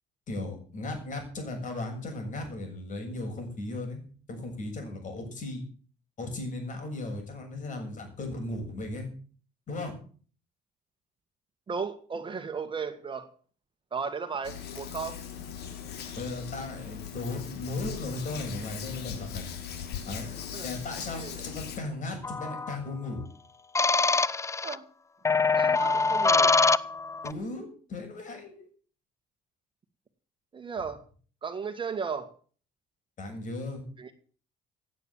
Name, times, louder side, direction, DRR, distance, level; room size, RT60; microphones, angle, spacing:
voice 1, 0.3-4.0 4.3-5.6 6.2-9.1 9.7-9.9 16.2-19.5 20.1-20.3 20.6-23.3 27.2-28.7 33.2-33.8, left 2 dB, 50° left, 4 dB, 7.1 m, -36 dB
voice 2, 11.7-13.3 13.9-15.2 20.5-20.7 21.1-21.4 24.6-24.9 25.6-26.5 30.5-31.0 31.4-32.3 34.0-34.1, right 5 dB, 30° right, 8 dB, 1.8 m, -35 dB
Hands, 14.4-21.8, left 8 dB, 75° left, 3.5 m, -39 dB
sound 1, 22.2-22.8 23.7-24.8 25.2-27.3, left 4 dB, 15° left, 0.6 m, -24 dB
17.0 x 9.1 x 7.4 m, 0.43 s
cardioid pair, 110°, 17 cm